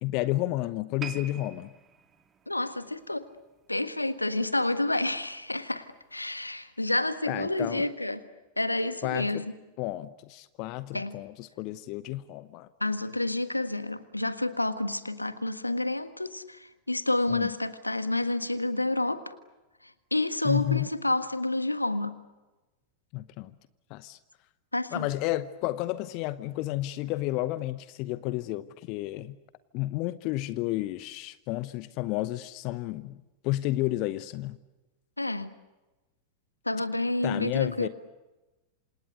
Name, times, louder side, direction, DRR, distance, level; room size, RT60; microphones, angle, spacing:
voice 1, 0.0-1.7 7.3-7.9 9.0-9.4 9.8-12.7 17.3-17.5 20.4-20.9 23.1-23.5 23.9-24.2 24.9-29.4 29.7-33.2 33.4-34.6 37.2-37.9, left 16 dB, 45° left, 0.8 m, -31 dB
sound 1, 1.0-4.3 4.6-4.9 5.5-5.6, right 6 dB, 20° right, 2.2 m, -46 dB
voice 2, 2.5-3.3 3.7-8.2 8.6-9.4 10.9-11.2 12.8-19.4 20.1-22.1 24.7-25.1 35.2-35.5 36.6-37.9, left 2 dB, 85° left, 1.4 m, -29 dB
28.0 x 27.5 x 6.6 m
figure-of-eight pair, 90°, 0 cm